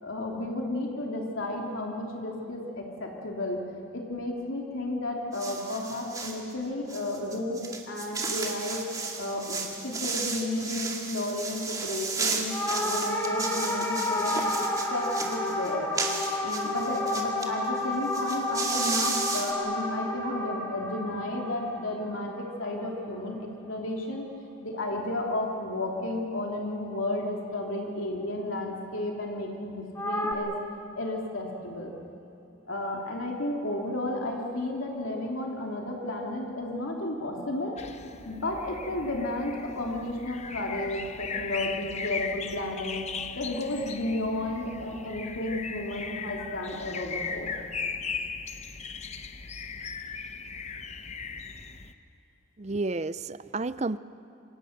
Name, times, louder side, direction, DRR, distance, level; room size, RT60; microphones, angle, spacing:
voice 1, 0.0-3.6 3.9-8.9 9.2-14.4 14.9-15.9 16.4-24.3 24.6-30.5 31.0-31.9 32.7-37.8 38.2-43.1 43.3-47.5, left 1 dB, 85° left, 0 dB, 2.9 m, -33 dB
sound 1, 5.3-6.4 6.9-17.5 17.8-17.9 18.1-19.5, right 4 dB, 20° right, 2.3 m, -33 dB
sound 2, 12.5-23.0 29.9-30.3, left 1 dB, 15° left, 2.5 m, -31 dB
sound 3, 37.8-51.9, left 5 dB, 35° left, 0.9 m, -38 dB
voice 2, 52.6-54.0, right 3 dB, 35° right, 15 dB, 0.5 m, -31 dB
28.5 x 25.0 x 6.6 m, 2.8 s
head